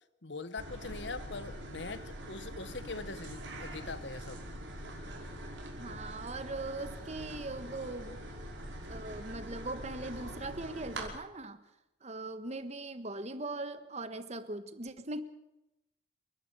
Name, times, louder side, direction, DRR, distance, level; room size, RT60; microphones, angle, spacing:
voice 1, 0.2-4.4 5.8-6.0, left 3 dB, 70° left, 14 dB, 1.2 m, -42 dB
sound 1, 0.6-11.1, right 1 dB, 85° right, 5.4 m, -44 dB
voice 2, 5.7-8.2 8.9-11.6 12.0-15.2, right 2 dB, 35° right, 11 dB, 1.4 m, -40 dB
28.5 x 12.0 x 8.2 m, 0.91 s
head